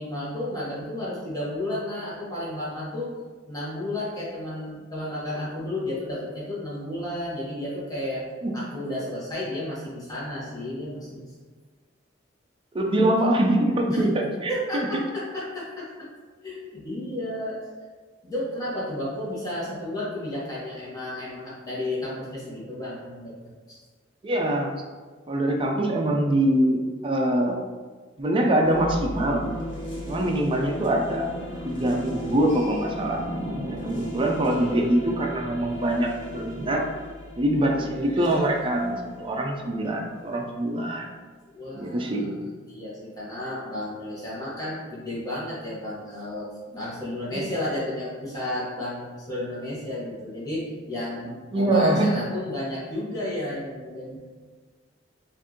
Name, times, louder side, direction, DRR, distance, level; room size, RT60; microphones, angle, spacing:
voice 1, 0.0-3.1 3.5-8.2 8.5-11.3 13.9-14.0 14.5-15.8 16.4-17.6 18.2-23.4 23.7-23.8 41.5-42.3 42.7-54.2, left 1 dB, 20° left, -8 dB, 1.2 m, -32 dB
voice 2, 12.7-14.9 24.2-24.7 25.3-27.6 28.2-29.4 30.1-31.3 31.6-33.2 33.7-36.8 37.4-41.1 41.7-42.5 47.3-47.4 51.5-52.1, right 1 dB, 30° right, 1 dB, 0.5 m, -24 dB
sound 1, 28.6-40.4, equal, 70° left, 1.4 m, -36 dB
4.4 x 2.6 x 3.0 m, 1.4 s
head